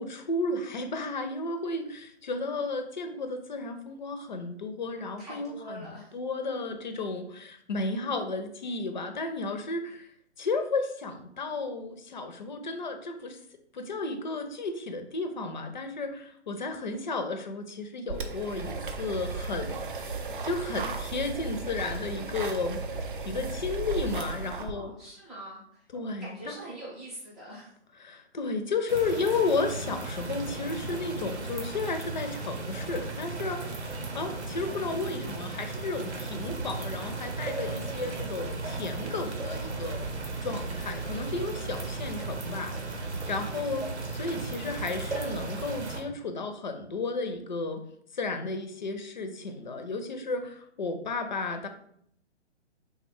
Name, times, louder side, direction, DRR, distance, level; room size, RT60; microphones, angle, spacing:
voice 1, 0.0-10.1 10.4-13.4 13.7-19.9 20.4-22.8 23.2-24.9 25.9-26.5 28.0-33.9 34.1-40.1 40.4-47.8 48.1-51.7, left 3 dB, 45° left, 7 dB, 0.4 m, -33 dB
voice 2, 5.0-6.1 24.4-25.9 26.2-27.7, right 1 dB, ahead, -10 dB, 0.6 m, -44 dB
sound 1, 18.1-24.7, right 3 dB, 50° right, 0.4 m, -35 dB
sound 2, 28.9-46.0, right 3 dB, 75° right, 0.8 m, -35 dB
3.2 x 2.1 x 3.6 m, 0.67 s
figure-of-eight pair, 140°, 34 cm